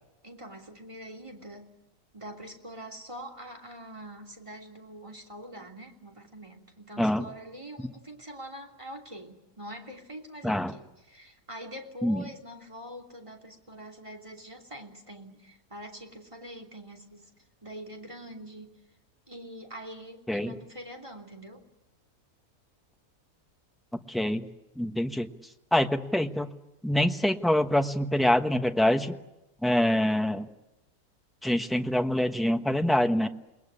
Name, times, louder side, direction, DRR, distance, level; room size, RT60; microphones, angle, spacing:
voice 1, 0.2-1.8 2.1-17.3 17.6-18.8 19.3-21.7, right 1 dB, 20° right, 4 dB, 3.1 m, -44 dB
voice 2, 24.1-24.5 24.8-25.3 25.7-26.5 26.8-29.1 29.6-30.5 31.4-33.3, left 1 dB, ahead, 6 dB, 1.0 m, -25 dB
29.0 x 20.5 x 9.9 m, 0.95 s
omnidirectional pair, 1.7 m